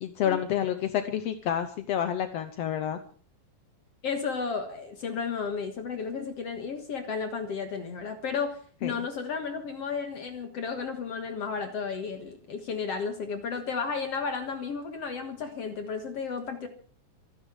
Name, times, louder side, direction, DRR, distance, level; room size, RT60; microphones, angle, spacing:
voice 1, 0.0-3.0 8.8-9.0, left 10 dB, 75° left, 9 dB, 1.5 m, -29 dB
voice 2, 4.0-16.7, left 5 dB, 50° left, 6 dB, 2.2 m, -33 dB
25.5 x 10.5 x 5.0 m, 0.43 s
omnidirectional pair, 4.1 m